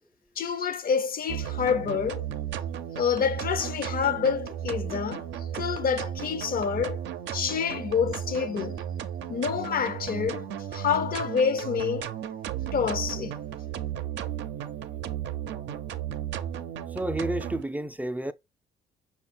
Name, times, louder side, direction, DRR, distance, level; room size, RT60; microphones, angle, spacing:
voice 1, 0.4-2.3 2.9-5.3 5.5-7.0 7.3-8.8 9.3-10.5 10.7-12.1 12.7-13.4, left 6 dB, 50° left, 0.6 m, -27 dB
sound 1, 1.3-17.6, right 10 dB, 70° right, 0.5 m, -34 dB
voice 2, 16.9-18.3, right 1 dB, 10° right, 0.4 m, -30 dB
5.4 x 2.3 x 4.2 m
supercardioid pair, 55°, 19 cm